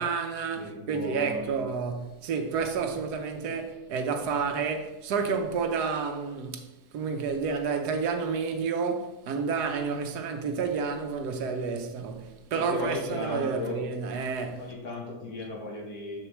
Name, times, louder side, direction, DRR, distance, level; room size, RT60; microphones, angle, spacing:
voice 1, 0.0-6.7 6.9-14.7, right 5 dB, 90° right, 1.3 m, -30 dB
voice 2, 0.5-1.6 12.5-13.8 14.6-16.3, left 2 dB, 70° left, 1.6 m, -36 dB
7.5 x 6.6 x 3.0 m
omnidirectional pair, 1.6 m